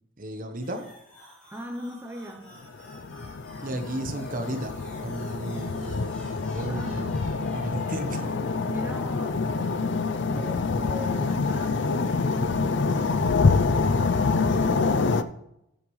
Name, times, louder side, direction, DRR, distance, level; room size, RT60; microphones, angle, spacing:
voice 1, 0.2-0.8 3.6-4.8 5.0-6.0 6.5-7.2 7.5-8.3 14.8-15.1, right 1 dB, 40° right, 7 dB, 1.1 m, -34 dB
sound 1, 0.6-10.6, equal, 5° left, 4.7 m, -48 dB
voice 2, 1.5-2.5 6.7-7.1 8.7-15.2, equal, 10° right, 2 dB, 0.7 m, -40 dB
sound 2, 2.9-15.2, left 4 dB, 60° left, 0.5 m, -26 dB
13.0 x 8.8 x 3.2 m, 0.81 s
head